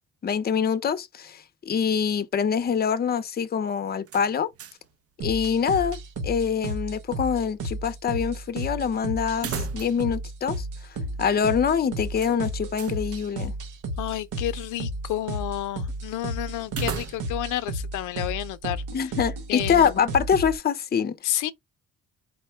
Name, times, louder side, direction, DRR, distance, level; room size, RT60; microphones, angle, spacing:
voice 1, 0.2-4.5 5.2-10.7 11.2-13.5 18.9-21.2, left 7 dB, 30° left, 0.6 m, -25 dB
sound 1, 4.0-4.9 5.2-5.3 9.3-10.2 10.5-10.6 12.2-13.0 16.7-17.5, right 8 dB, 50° right, 0.6 m, -36 dB
sound 2, 5.2-20.6, right 1 dB, 90° right, 0.9 m, -33 dB
voice 2, 14.0-19.1 19.5-20.0 21.2-21.5, left 14 dB, 85° left, 0.5 m, -30 dB
4.2 x 2.1 x 4.3 m
cardioid pair, 90°, 30 cm